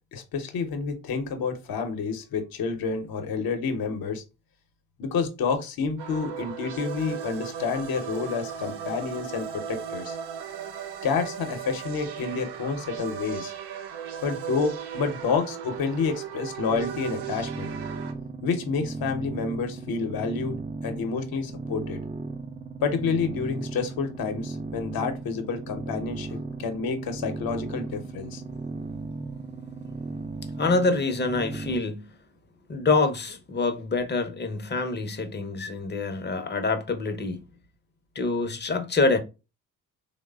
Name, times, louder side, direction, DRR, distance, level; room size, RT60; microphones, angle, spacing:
voice 1, 0.1-4.2 5.0-10.2 11.0-13.5 14.2-17.7 18.4-20.6 20.8-22.0 22.8-28.4, left 5 dB, 60° left, 0.8 m, -29 dB
sound 1, 6.0-18.1, right 8 dB, 75° right, 0.6 m, -36 dB
sound 2, 16.7-31.8, right 3 dB, 20° right, 0.4 m, -36 dB
voice 2, 30.6-32.1 32.7-37.4 38.1-39.2, left 3 dB, 25° left, 0.6 m, -26 dB
3.1 x 2.1 x 2.3 m
supercardioid pair, 50°, 41 cm